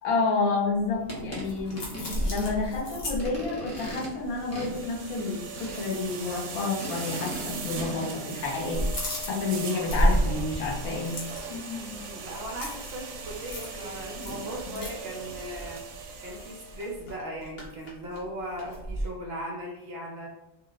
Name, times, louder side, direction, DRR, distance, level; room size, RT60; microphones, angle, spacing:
voice 1, 0.0-1.9 2.2-8.9 9.3-11.2 14.3-14.4 14.7-14.8, left 3 dB, 85° left, -2 dB, 1.3 m, -29 dB
sound 1, 0.8-5.3 5.6-5.8 6.2-6.4 7.3-7.9 8.2-19.1, equal, 50° left, 1.0 m, -33 dB
sound 2, 0.9-8.1, equal, 15° left, 0.6 m, -40 dB
sound 3, 4.3-17.0, right 4 dB, 80° right, 1.0 m, -39 dB
voice 2, 9.3-9.7 12.0-15.8 16.2-20.3, equal, 55° right, -1 dB, 0.8 m, -38 dB
2.9 x 2.0 x 3.9 m, 0.93 s
omnidirectional pair, 1.4 m